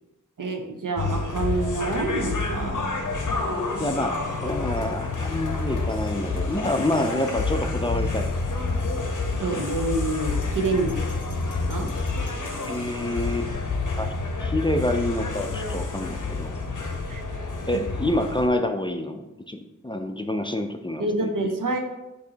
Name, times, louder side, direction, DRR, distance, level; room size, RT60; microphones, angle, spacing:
voice 1, 0.4-2.8 9.3-10.9 11.4-11.9 17.1-17.2 21.0-21.8, right 2 dB, 90° right, 3 dB, 0.7 m, -27 dB
sound 1, 1.0-18.5, left 3 dB, 70° left, 0.6 m, -28 dB
voice 2, 3.5-8.3 12.6-13.5 14.0-14.1 14.4-16.6 17.7-21.3, left 1 dB, 15° left, 6 dB, 0.3 m, -27 dB
6.3 x 2.7 x 2.8 m, 0.98 s
wide cardioid pair, 50°, 31 cm